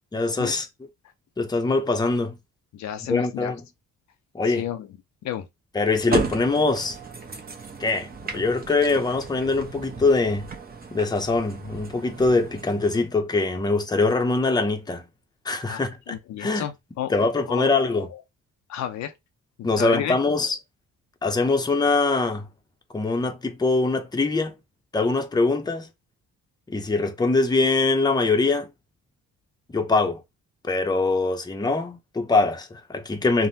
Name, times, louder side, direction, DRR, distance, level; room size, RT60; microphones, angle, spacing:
voice 1, 0.1-0.7 1.4-2.4 3.1-3.6 4.3-4.6 5.7-7.0 7.8-10.4 10.9-15.0 15.4-16.7 17.1-18.1 19.6-20.6 21.2-22.5 22.9-24.6 24.9-25.9 26.7-28.7 29.7-30.2 30.6-33.5, left 3 dB, 15° left, 0.6 m, -23 dB
voice 2, 2.7-3.6 4.5-4.9 5.2-5.5 15.7-17.1 17.5-18.2 18.7-19.1 19.6-20.2, left 11 dB, 65° left, 0.5 m, -32 dB
sound 1, 5.9-13.1, right 4 dB, 30° right, 0.8 m, -35 dB
3.4 x 2.2 x 2.7 m
cardioid pair, 90°, 30 cm